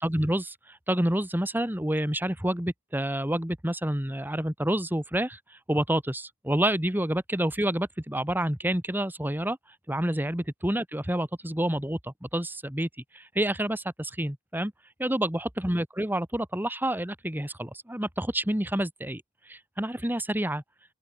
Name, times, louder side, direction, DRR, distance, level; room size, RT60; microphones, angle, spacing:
voice 1, 0.0-5.4 5.7-9.6 9.9-12.9 13.1-14.7 15.0-19.2 19.5-20.6, right 1 dB, 10° right, 2.1 m, -28 dB
open air
head